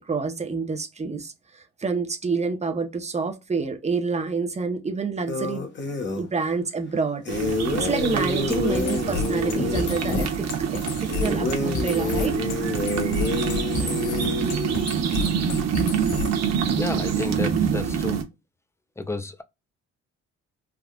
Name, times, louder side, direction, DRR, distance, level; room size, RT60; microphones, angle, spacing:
voice 1, 0.0-5.6 6.1-12.4, right 4 dB, 20° right, 0.8 m, -28 dB
sound 1, 5.3-6.3 7.3-10.2 11.1-14.8, left 3 dB, 40° left, 1.2 m, -28 dB
sound 2, 7.3-18.2, right 7 dB, 60° right, 0.8 m, -26 dB
sound 3, 8.5-16.5, left 6 dB, 80° left, 0.8 m, -32 dB
voice 2, 16.7-18.2 19.0-19.4, left 2 dB, 10° left, 0.5 m, -31 dB
3.5 x 2.4 x 2.3 m
cardioid pair, 90°, 30 cm